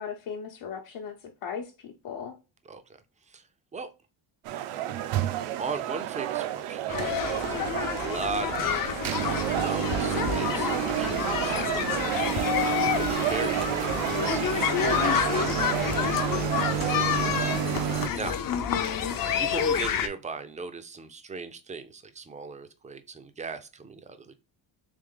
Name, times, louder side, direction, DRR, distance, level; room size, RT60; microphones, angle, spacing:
voice 1, 0.0-2.3 18.5-19.1, left 7 dB, 85° left, 0.9 m, -36 dB
sound 1, 4.5-18.1, right 11 dB, 90° right, 0.6 m, -29 dB
voice 2, 5.5-15.5 15.7-16.4 16.8-17.4 17.7-18.4 19.4-24.3, right 4 dB, 15° right, 0.3 m, -38 dB
sound 2, 6.9-20.1, left 9 dB, 45° left, 0.5 m, -29 dB
sound 3, 8.5-9.0 9.8-10.7 12.3-13.5, right 5 dB, 75° right, 1.0 m, -48 dB
3.4 x 3.2 x 3.6 m
cardioid pair, 125°, 50 cm